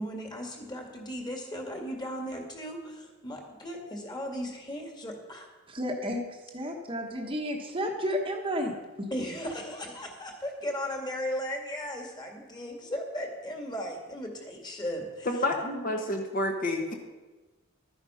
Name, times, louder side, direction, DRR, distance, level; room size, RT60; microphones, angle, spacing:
voice 1, 0.0-5.5 9.1-15.3, equal, 20° left, 2 dB, 2.1 m, -36 dB
voice 2, 5.7-9.1, equal, 25° right, 2 dB, 1.2 m, -32 dB
voice 3, 15.2-16.9, left 1 dB, 40° left, 2 dB, 1.4 m, -29 dB
13.0 x 10.0 x 5.7 m, 1.2 s
head